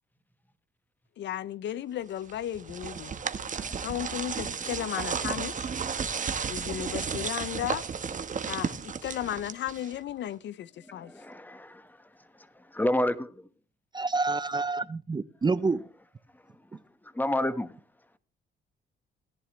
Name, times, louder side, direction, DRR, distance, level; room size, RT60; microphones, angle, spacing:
voice 1, 1.2-3.1 3.8-5.7 6.5-7.9 8.5-11.1, left 11 dB, 65° left, 0.6 m, -34 dB
sound 1, 2.3-10.1, right 6 dB, 40° right, 1.3 m, -33 dB
voice 2, 3.4-3.9 6.0-6.3 10.9-13.5 16.7-17.8, left 1 dB, 10° left, 1.3 m, -32 dB
voice 3, 13.9-15.9, right 3 dB, 20° right, 0.6 m, -28 dB
17.0 x 11.0 x 3.2 m
cardioid pair, 90°, 20 cm